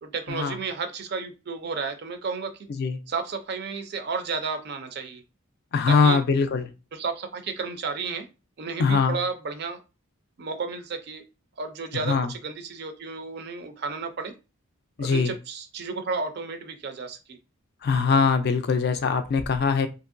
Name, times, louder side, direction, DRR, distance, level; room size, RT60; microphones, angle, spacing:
voice 1, 0.0-2.5 3.1-5.2 5.9-6.2 6.9-8.3 8.6-9.8 10.4-11.2 11.6-14.4 15.0-17.4, right 4 dB, 50° right, 7 dB, 0.4 m, -32 dB
voice 2, 5.7-6.7 8.8-9.2 12.0-12.3 15.0-15.3 17.8-19.9, left 5 dB, 45° left, 9 dB, 0.3 m, -22 dB
2.9 x 2.6 x 2.5 m, 0.29 s
head